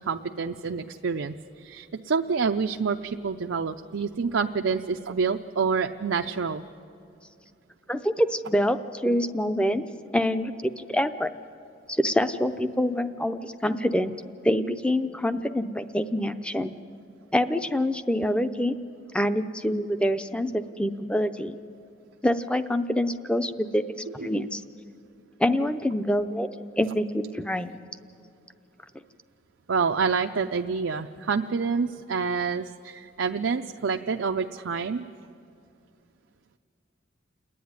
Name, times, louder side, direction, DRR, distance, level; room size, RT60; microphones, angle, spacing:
voice 1, 0.0-6.6 24.2-24.3 29.7-35.1, right 5 dB, 85° right, 5 dB, 0.5 m, -27 dB
voice 2, 7.9-9.9 10.1-11.3 11.9-14.1 14.4-16.7 17.3-18.7 19.1-21.6 22.2-23.8 24.1-24.6 25.4-26.5 26.8-27.7, equal, 5° left, 10 dB, 0.6 m, -26 dB
29.5 x 10.0 x 9.5 m, 2.6 s
head